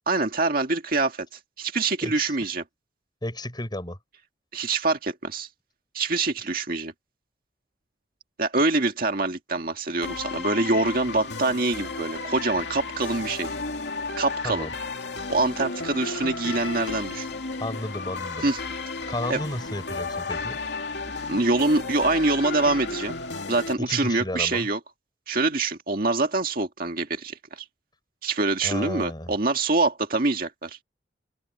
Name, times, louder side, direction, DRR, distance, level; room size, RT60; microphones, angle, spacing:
voice 1, 0.1-1.3 1.6-2.6 4.5-5.5 5.9-6.9 8.4-13.5 14.2-14.7 15.3-17.3 18.4-18.6 19.3-19.4 21.1-23.2 23.5-24.8 25.3-27.6 28.2-30.8, right 3 dB, 50° right, 1.9 m, -25 dB
voice 2, 2.0-2.4 3.2-4.0 14.4-14.7 17.6-18.5 19.1-20.6 23.8-24.7 28.6-29.3, left 1 dB, 25° left, 6.9 m, -33 dB
sound 1, 10.0-23.7, left 3 dB, 70° left, 2.5 m, -33 dB
open air
head